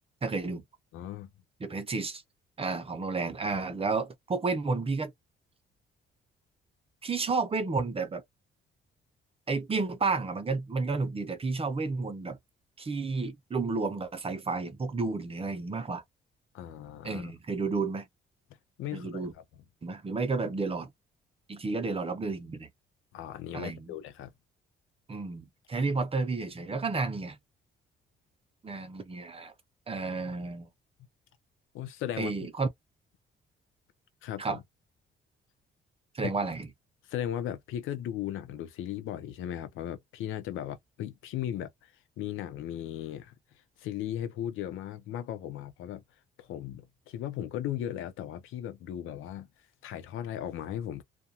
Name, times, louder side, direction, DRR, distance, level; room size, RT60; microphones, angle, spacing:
voice 1, 0.2-0.6 1.6-2.2 2.6-5.1 7.0-8.2 9.5-12.4 12.8-16.0 17.0-18.1 18.9-19.3 19.8-20.9 21.5-22.7 23.5-23.9 25.1-27.4 28.6-29.5 29.9-30.7 32.2-32.7 34.4-34.6 36.1-36.7, right 4 dB, 30° right, 0.7 m, -31 dB
voice 2, 0.9-1.3 16.5-17.3 18.8-19.4 23.1-24.3 31.7-32.3 34.2-34.6 36.2-36.3 37.0-43.3 43.8-46.0 46.4-49.5 49.8-51.0, left 11 dB, 90° left, 0.6 m, -37 dB
2.3 x 2.2 x 2.8 m
cardioid pair, 90°, 20 cm